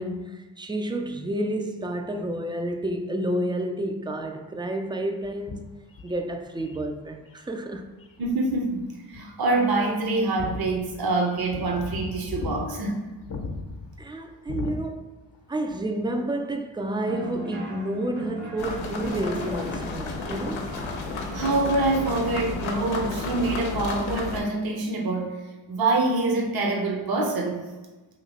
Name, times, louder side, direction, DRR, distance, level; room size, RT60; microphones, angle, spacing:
voice 1, 0.0-5.6 6.0-7.9 14.0-15.2 15.5-20.7, right 1 dB, 10° right, 0.3 m, -30 dB
sound 1, 5.2-7.4 8.0-8.8 9.1-9.2 9.5-9.6 10.1-15.4 15.6-15.8 17.3-17.4, left 4 dB, 50° left, 0.7 m, -37 dB
voice 2, 8.2-13.0 21.3-25.4 25.7-27.6, right 2 dB, 55° right, 0.8 m, -25 dB
sound 2, 17.0-22.8, right 2 dB, 80° right, 0.8 m, -40 dB
sound 3, 18.6-24.4, left 4 dB, 90° left, 0.6 m, -32 dB
3.0 x 2.8 x 4.1 m
supercardioid pair, 45°, 46 cm